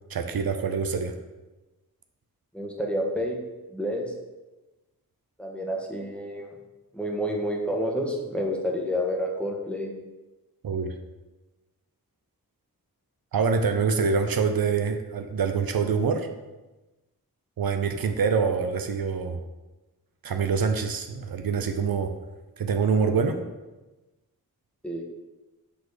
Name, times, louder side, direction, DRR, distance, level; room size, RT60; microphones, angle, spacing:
voice 1, 0.1-1.1 10.6-10.9 13.3-16.3 17.6-19.4 20.2-22.1 22.6-23.4, right 5 dB, 75° right, 6 dB, 0.6 m, -25 dB
voice 2, 2.5-3.4 3.7-4.1 5.4-6.5 6.9-9.9 24.8-25.0, equal, 5° left, 0 dB, 1.3 m, -29 dB
6.9 x 4.1 x 4.9 m, 1.1 s
wide cardioid pair, 60°, 36 cm